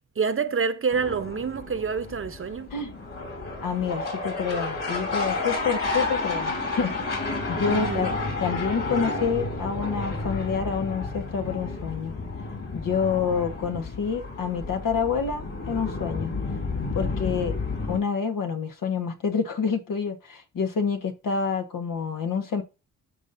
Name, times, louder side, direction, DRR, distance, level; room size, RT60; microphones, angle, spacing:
voice 1, 0.2-2.7 7.7-8.1, right 5 dB, 40° right, 0.9 m, -27 dB
sound 1, 0.9-18.0, left 3 dB, 45° left, 4.4 m, -31 dB
voice 2, 3.6-8.1 8.4-12.1 12.7-16.3 16.9-17.5 17.9-22.6, left 6 dB, 70° left, 1.6 m, -28 dB
12.5 x 5.3 x 2.7 m
wide cardioid pair, 120°, 34 cm